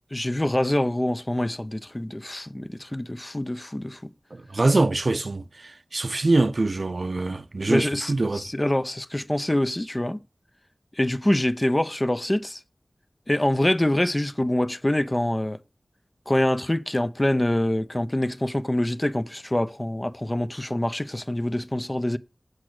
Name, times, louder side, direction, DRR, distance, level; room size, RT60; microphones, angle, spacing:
voice 1, 0.1-4.1 7.7-10.2 11.0-12.6 13.3-15.6 16.3-22.2, left 1 dB, 25° left, 0.6 m, -25 dB
voice 2, 4.3-8.4, right 2 dB, 60° right, 0.6 m, -24 dB
8.2 x 6.0 x 6.2 m
wide cardioid pair, 60°, 0 cm